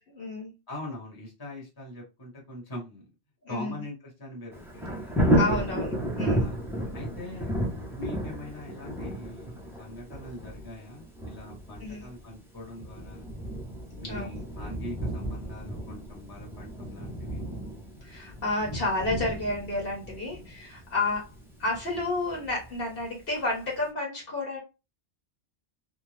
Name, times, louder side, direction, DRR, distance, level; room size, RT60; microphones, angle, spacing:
voice 1, 0.1-0.5 3.4-3.8 5.3-6.5 11.8-12.1 14.0-14.4 18.0-21.3 21.6-24.6, left 2 dB, 55° left, -2 dB, 1.2 m, -31 dB
voice 2, 0.7-3.0 3.5-5.7 6.4-6.6 6.9-7.5 7.9-13.3 14.0-17.4, left 1 dB, 20° left, -2 dB, 1.1 m, -42 dB
Thunder, 4.5-23.3 23.7-23.8, equal, 5° right, 0.5 m, -33 dB
2.7 x 2.3 x 3.1 m, 0.28 s
omnidirectional pair, 1.2 m